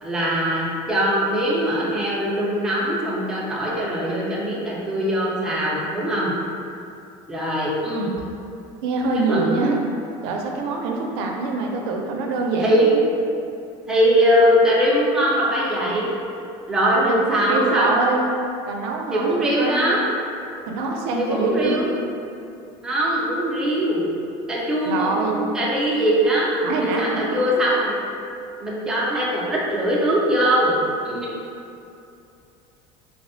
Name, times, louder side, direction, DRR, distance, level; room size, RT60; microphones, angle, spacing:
voice 1, 0.0-6.3 7.3-8.1 9.1-9.6 12.6-12.9 13.9-16.1 16.7-18.0 19.1-20.0 21.2-21.9 22.8-24.1 24.5-26.5 26.8-27.9 28.6-30.8 31.0-31.3, equal, 5° right, -6 dB, 0.3 m, -21 dB
voice 2, 8.8-9.8 10.2-13.1 16.9-18.3 18.7-20.1 20.7-21.8 24.9-25.4 26.6-27.2, right 3 dB, 80° right, 1 dB, 0.4 m, -25 dB
3.3 x 2.0 x 2.5 m, 2.6 s
cardioid pair, 160°, 14 cm